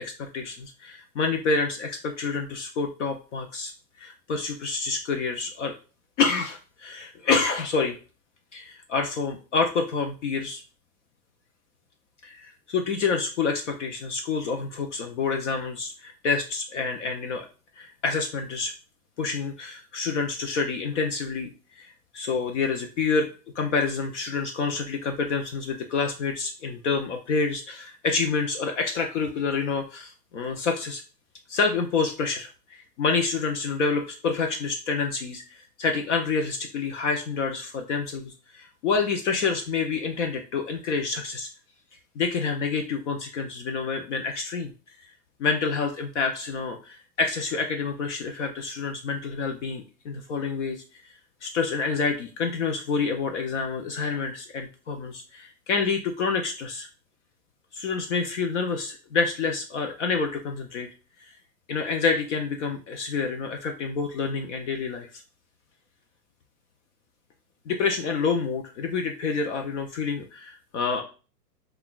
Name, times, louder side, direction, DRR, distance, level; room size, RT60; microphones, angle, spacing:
voice 1, 0.0-3.7 4.0-5.7 6.2-8.0 8.5-10.6 12.2-17.5 17.8-18.7 19.2-21.5 21.8-23.3 23.6-31.0 31.5-35.4 35.8-41.5 42.2-44.7 45.4-50.8 51.4-56.9 57.7-60.9 61.3-61.4 61.7-65.1 67.7-71.0, left 4 dB, 50° left, 4 dB, 0.6 m, -28 dB
5.5 x 2.3 x 2.3 m, 0.35 s
hypercardioid pair, 150°, 49 cm